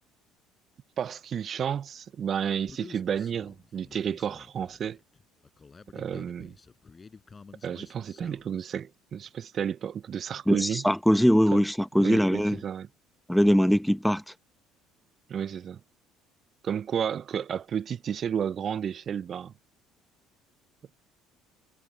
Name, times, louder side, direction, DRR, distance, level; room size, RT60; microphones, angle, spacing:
voice 1, 1.0-5.0 5.9-6.5 7.6-10.8 11.5-11.6 12.0-12.9 15.3-15.8 16.6-19.5, right 8 dB, 45° right, 0.6 m, -31 dB
Human voice, 2.7-8.7, left 4 dB, 30° left, 5.7 m, -50 dB
voice 2, 10.5-12.6 13.3-14.2, equal, ahead, 1.1 m, -22 dB
hypercardioid pair, 70°, 0 cm